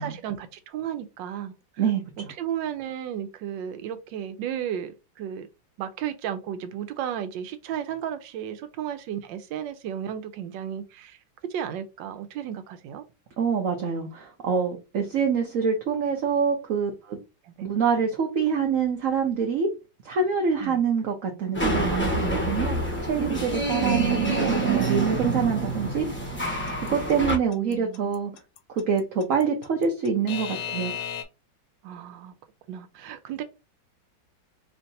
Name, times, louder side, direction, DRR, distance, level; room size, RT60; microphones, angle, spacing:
voice 1, 0.0-1.5 2.2-5.5 5.8-11.2 11.5-13.0 17.4-17.7 20.6-20.8 23.8-25.4 27.7-28.1 31.8-32.3 32.7-33.4, right 9 dB, 90° right, 1.3 m, -33 dB
voice 2, 13.4-17.2 17.6-19.7 20.0-22.8 23.0-26.0 26.9-28.3 28.7-30.9, right 6 dB, 60° right, 1.0 m, -25 dB
sound 1, 21.5-27.4, right 2 dB, 10° left, 0.6 m, -27 dB
Alarm / Clock, 26.4-31.2, left 9 dB, 70° left, 1.0 m, -34 dB
4.5 x 2.8 x 2.7 m
omnidirectional pair, 2.0 m